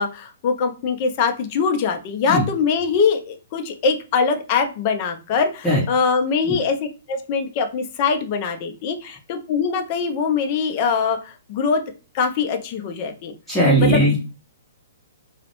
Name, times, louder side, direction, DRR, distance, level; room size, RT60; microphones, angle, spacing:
voice 1, 0.0-11.8 12.1-13.3 13.8-14.0, left 5 dB, 40° left, 6 dB, 0.4 m, -22 dB
voice 2, 13.5-14.2, right 1 dB, 5° left, -7 dB, 0.7 m, -17 dB
2.3 x 2.1 x 2.9 m, 0.31 s
figure-of-eight pair, 120°, 0 cm